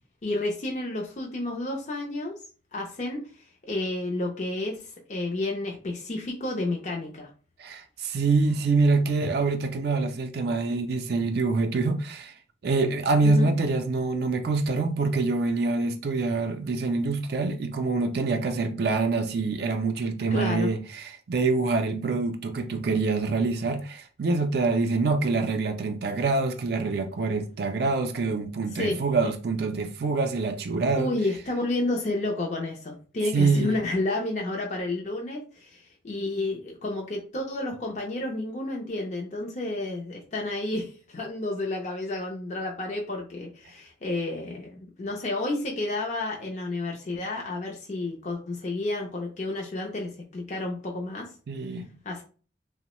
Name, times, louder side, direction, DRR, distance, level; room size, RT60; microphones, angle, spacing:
voice 1, 0.2-2.4 2.7-7.3 13.2-13.5 20.3-20.7 28.7-29.0 30.9-51.3 52.0-52.2, left 2 dB, 40° left, 0.4 m, -31 dB
voice 2, 7.6-12.3 12.6-31.1 33.3-33.7 51.5-51.9, right 3 dB, 55° right, 0.4 m, -25 dB
2.9 x 2.0 x 2.9 m
head